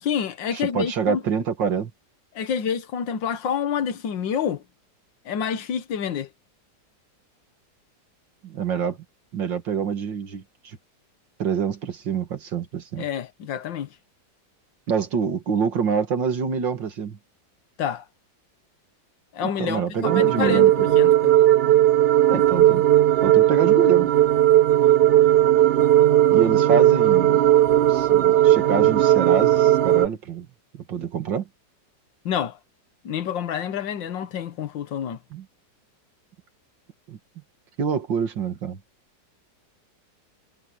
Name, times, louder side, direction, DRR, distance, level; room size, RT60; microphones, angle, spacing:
voice 1, 0.0-1.2 2.4-4.6 5.3-6.3 13.0-13.9 17.8-18.0 19.3-21.3 32.3-32.6 33.0-35.2, left 8 dB, 85° left, 1.9 m, -28 dB
voice 2, 0.5-1.9 8.4-9.0 9.3-10.8 11.4-13.1 14.9-17.2 19.4-20.9 22.3-22.9 23.2-24.1 26.3-27.5 27.9-30.5 30.7-31.5 35.3-35.5 37.1-37.2 37.8-38.8, right 6 dB, 85° right, 2.6 m, -26 dB
sound 1, 20.0-30.1, right 12 dB, 55° right, 0.7 m, -17 dB
omnidirectional pair, 1.9 m